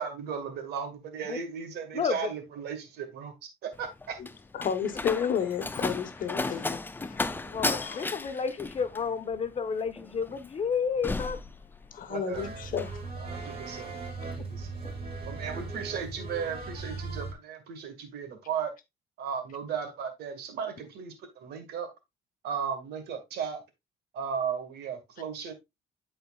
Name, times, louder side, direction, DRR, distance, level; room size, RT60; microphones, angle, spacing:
voice 1, 0.0-4.2 7.3-7.6 12.1-12.5 13.2-14.8 15.3-18.7 19.2-21.9 22.4-23.6 24.1-25.6, right 7 dB, 75° right, 1.9 m, -36 dB
Slam, 3.7-12.2 12.5-13.0, left 3 dB, 10° left, 0.5 m, -35 dB
voice 2, 4.5-6.8 7.1-7.2 7.8-8.0 11.9-13.0, left 7 dB, 55° left, 1.2 m, -31 dB
voice 3, 7.5-11.4 12.0-12.1, left 6 dB, 35° left, 1.0 m, -31 dB
sound 1, 12.3-17.3, right 3 dB, 35° right, 2.3 m, -38 dB
12.5 x 4.4 x 2.4 m
cardioid pair, 110°, 17 cm